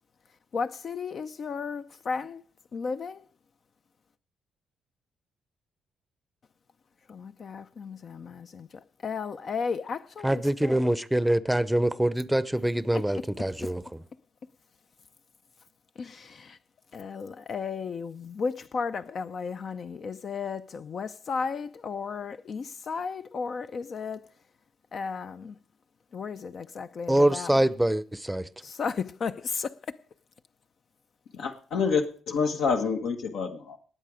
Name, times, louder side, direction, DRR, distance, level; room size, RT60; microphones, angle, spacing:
voice 1, 0.5-2.4 2.7-3.2 7.1-10.8 12.9-13.0 13.6-13.7 16.0-16.6 16.9-24.3 24.9-25.6 26.1-27.6 28.6-30.0, left 5 dB, 50° left, 0.6 m, -34 dB
voice 2, 10.2-14.0 27.1-28.5, right 1 dB, 5° right, 0.7 m, -25 dB
voice 3, 31.3-33.8, left 5 dB, 80° left, 1.5 m, -27 dB
19.0 x 7.5 x 5.0 m
cardioid pair, 90°, 0 cm